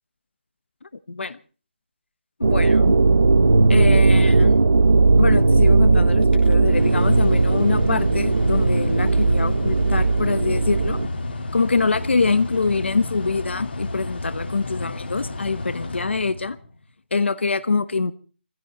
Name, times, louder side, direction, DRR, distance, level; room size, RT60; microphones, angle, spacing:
voice 1, 2.4-3.0 3.7-4.7 5.2-11.0 11.5-16.6 17.1-18.1, left 4 dB, 80° left, 1.2 m, -24 dB
sound 1, 2.4-11.1, right 3 dB, 85° right, 1.0 m, -17 dB
Mechanical fan, 6.2-16.8, left 2 dB, 65° left, 3.5 m, -32 dB
22.0 x 15.5 x 4.0 m
hypercardioid pair, 175°, 6 cm